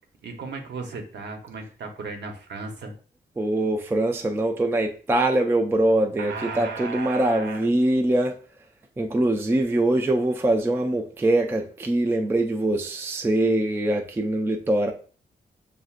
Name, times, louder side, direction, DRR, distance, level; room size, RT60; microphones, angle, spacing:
voice 1, 0.2-2.9 6.2-7.7, right 4 dB, 80° right, 0.9 m, -35 dB
voice 2, 3.4-8.4 9.0-14.9, right 1 dB, 15° right, 0.3 m, -23 dB
6.9 x 2.6 x 2.4 m
wide cardioid pair, 155°, 18 cm